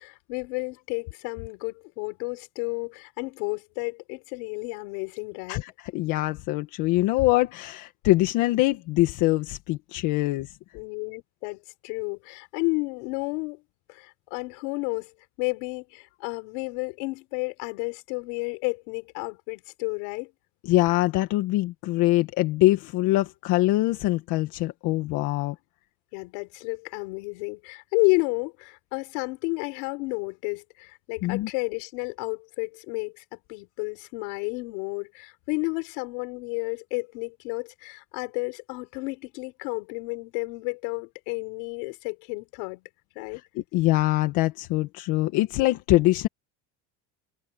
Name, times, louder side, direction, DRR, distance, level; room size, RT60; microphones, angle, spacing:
voice 1, 0.0-5.6 10.7-13.6 13.9-15.1 15.4-20.3 26.1-42.8 43.1-43.4, left 31 dB, 85° left, 6.1 m, -31 dB
voice 2, 5.5-10.5 20.7-25.6 31.2-31.5 43.6-46.3, left 18 dB, 60° left, 1.7 m, -23 dB
cardioid pair, 175°, 34 cm